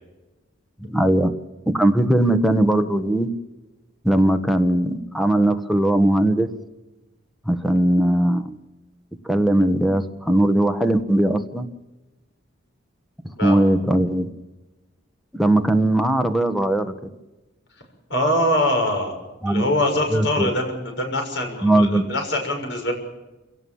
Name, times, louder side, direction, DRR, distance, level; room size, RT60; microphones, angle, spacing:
voice 1, 0.8-1.3 1.7-3.3 4.0-6.5 7.5-8.4 9.2-11.7 13.4-14.3 15.3-16.9 19.4-19.6 20.1-20.5 21.6-22.0, right 1 dB, ahead, 5 dB, 1.4 m, -19 dB
voice 2, 18.1-19.2 19.4-22.9, left 1 dB, 65° left, 4 dB, 6.6 m, -23 dB
27.5 x 17.5 x 7.3 m, 1.1 s
head